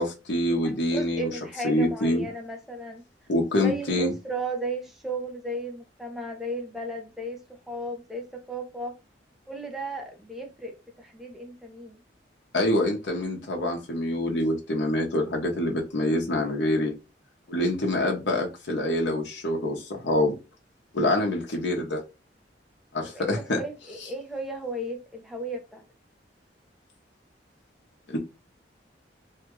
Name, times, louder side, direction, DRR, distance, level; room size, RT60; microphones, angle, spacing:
voice 1, 0.0-1.3 1.6-2.3 3.3-4.1 12.5-16.9 17.5-20.3 20.9-22.0 22.9-23.6 28.1-28.2, left 1 dB, 90° left, 0.9 m, -26 dB
voice 2, 0.5-3.0 3.6-8.9 9.5-12.0 23.1-25.8, right 1 dB, ahead, 0.6 m, -35 dB
2.8 x 2.3 x 3.0 m
head